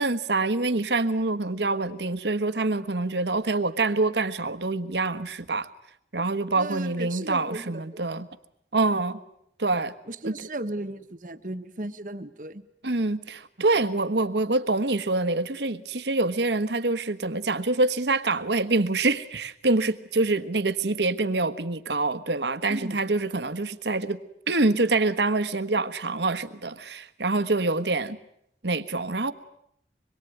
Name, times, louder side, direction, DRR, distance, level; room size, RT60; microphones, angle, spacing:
voice 1, 0.0-5.7 6.1-8.3 8.7-9.2 9.6-9.9 10.2-10.3 12.8-24.2 24.5-28.2 28.6-29.3, right 2 dB, 80° right, 11 dB, 1.4 m, -25 dB
voice 2, 6.5-8.1 10.1-12.7 22.7-23.0, right 1 dB, 45° right, 9 dB, 1.4 m, -35 dB
25.5 x 22.0 x 9.3 m, 0.75 s
head